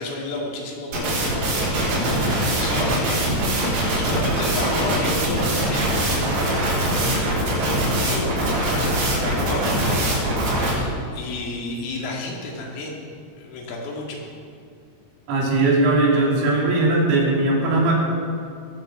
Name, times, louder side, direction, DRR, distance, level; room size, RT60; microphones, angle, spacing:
voice 1, 0.0-1.8 2.2-10.2 10.5-13.0 13.4-14.2, left 2 dB, 75° left, -2 dB, 4.9 m, -32 dB
sound 1, 0.9-10.7, right 1 dB, 90° right, 7.3 m, -22 dB
voice 2, 15.3-17.9, right 2 dB, 75° right, -3 dB, 5.3 m, -19 dB
21.5 x 7.2 x 7.4 m, 2.3 s
omnidirectional pair, 5.9 m